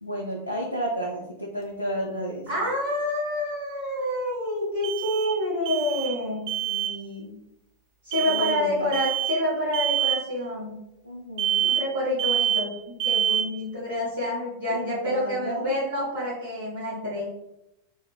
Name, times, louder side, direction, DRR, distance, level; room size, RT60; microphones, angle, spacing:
voice 1, 0.0-2.6 6.6-7.4 8.2-8.9 11.0-11.7 14.7-15.7, equal, 90° left, -2 dB, 0.3 m, -32 dB
sound 1, 1.6-1.7 4.8-6.2 6.5-7.0 8.1-8.6 8.9-9.4 9.7-10.2 11.4-11.9 12.2-12.7 13.0-13.6, right 10 dB, 50° right, 0.4 m, -26 dB
voice 2, 2.5-6.5 8.0-10.7 11.7-17.3, left 1 dB, 80° right, -12 dB, 1.4 m, -28 dB
2.9 x 2.5 x 2.2 m, 0.87 s
figure-of-eight pair, 90°, 0 cm